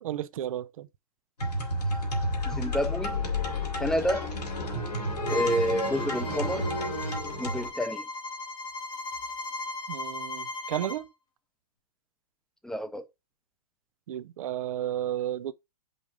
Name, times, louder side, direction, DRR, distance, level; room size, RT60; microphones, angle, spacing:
voice 1, 0.0-0.9 9.9-11.1 14.1-15.5, right 12 dB, 60° right, 0.7 m, -33 dB
sound 1, 1.4-7.7, left 1 dB, 90° left, 3.1 m, -31 dB
voice 2, 2.4-3.1 3.8-4.3 5.3-6.7 7.4-8.0 12.6-13.1, equal, 5° left, 0.9 m, -29 dB
Bowed string instrument, 5.3-11.0, left 2 dB, 20° left, 1.3 m, -37 dB
5.4 x 4.7 x 5.2 m
hypercardioid pair, 120°, 20 cm